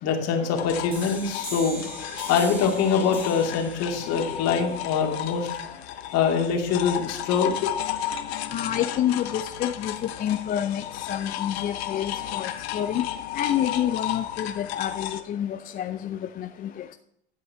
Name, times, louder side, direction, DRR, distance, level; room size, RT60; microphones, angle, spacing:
voice 1, 0.0-5.7 6.1-8.1, left 6 dB, 50° left, 2 dB, 2.5 m, -24 dB
sound 1, 0.6-15.2, left 11 dB, 65° left, 1.0 m, -33 dB
sound 2, 0.9-6.3, right 1 dB, 5° right, 3.1 m, -42 dB
voice 2, 8.5-10.8 11.1-13.1 13.3-16.5, left 10 dB, 25° left, 7 dB, 0.5 m, -28 dB
11.0 x 5.4 x 5.6 m, 0.75 s
hypercardioid pair, 95°, 34 cm